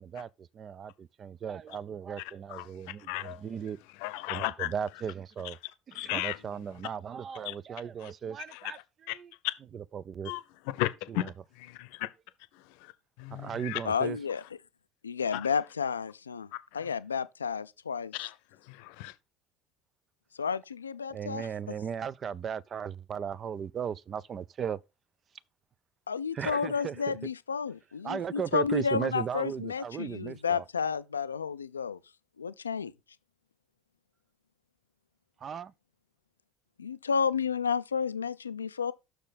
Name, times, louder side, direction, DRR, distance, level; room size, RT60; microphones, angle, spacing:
voice 1, 0.0-3.8 4.3-5.6 5.9-8.8 9.1-9.3 9.7-10.3 11.1-11.3 13.3-14.2 21.1-24.8 26.3-27.2 28.0-30.6 35.4-35.7, right 7 dB, 35° right, 0.5 m, -36 dB
voice 2, 2.5-3.4 4.0-4.7 5.9-6.4 7.4-7.5 8.0-8.1 8.5-9.2 9.4-9.5 10.2-10.4 10.7-11.3 11.6-12.1 12.5-12.9 13.2-13.8 15.3-15.5 16.5-16.8 18.1-18.3 18.6-19.1, left 16 dB, 60° left, 0.7 m, -35 dB
voice 3, 13.8-14.4 15.0-16.5 16.7-18.1 20.4-21.5 26.1-32.0 32.4-32.9 36.8-38.9, left 6 dB, 80° left, 0.3 m, -31 dB
6.7 x 6.3 x 4.0 m
figure-of-eight pair, 65°, 0 cm